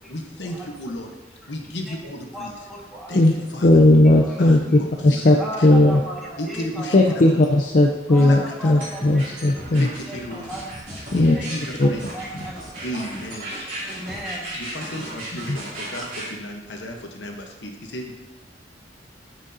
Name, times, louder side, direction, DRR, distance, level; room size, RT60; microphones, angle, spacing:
voice 1, 0.1-1.1 1.5-2.6 3.1-3.2 3.5-3.7 4.4-5.2 5.6-5.7 6.4-7.3 8.2-9.1 9.7-10.6 11.1-12.0 12.8-13.5 14.6-18.2, equal, 75° left, 2 dB, 1.0 m, -34 dB
voice 2, 2.3-3.4 4.2-4.8 5.4-7.2 8.1-9.3 9.7-11.6 11.8-12.9 13.8-14.6, right 1 dB, ahead, -5 dB, 1.6 m, -37 dB
voice 3, 3.6-4.6 5.0-5.4 5.6-6.0 6.9-9.9 11.1-11.4 11.8-11.9 15.5-15.6, left 1 dB, 45° left, 1 dB, 0.5 m, -16 dB
sound 1, 8.8-16.3, right 1 dB, 50° right, 2.8 m, -35 dB
11.0 x 6.3 x 2.7 m, 1.1 s
head